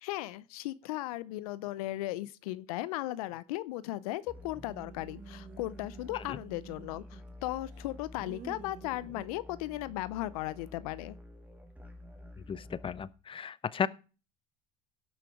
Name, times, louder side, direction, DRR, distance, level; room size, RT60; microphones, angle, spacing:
voice 1, 0.0-11.2, left 16 dB, 85° left, 0.6 m, -37 dB
sound 1, 4.3-13.1, left 1 dB, 10° right, 2.1 m, -50 dB
sound 2, 4.5-7.3 7.7-9.3, right 7 dB, 40° right, 2.0 m, -50 dB
voice 2, 12.5-13.9, left 7 dB, 30° left, 0.8 m, -34 dB
17.0 x 6.0 x 4.9 m
supercardioid pair, 85°, 18 cm